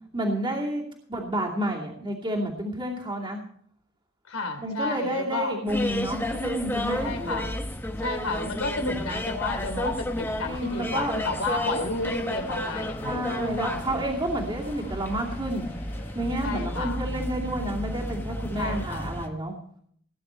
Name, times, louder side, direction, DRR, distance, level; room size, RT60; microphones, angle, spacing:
voice 1, 0.1-0.8 1.1-3.4 4.6-7.5 10.4-11.1 13.0-15.7 16.1-19.5, right 1 dB, 25° right, -3 dB, 2.6 m, -30 dB
voice 2, 4.3-5.5 7.0-7.5 8.0-13.7 16.4-17.0 18.6-19.1, left 2 dB, 80° left, 4 dB, 3.2 m, -31 dB
sound 1, 5.7-19.3, left 1 dB, 10° left, 1.0 m, -32 dB
sound 2, 10.4-16.4, left 3 dB, 35° left, 2.8 m, -47 dB
18.5 x 10.0 x 4.4 m, 0.62 s
head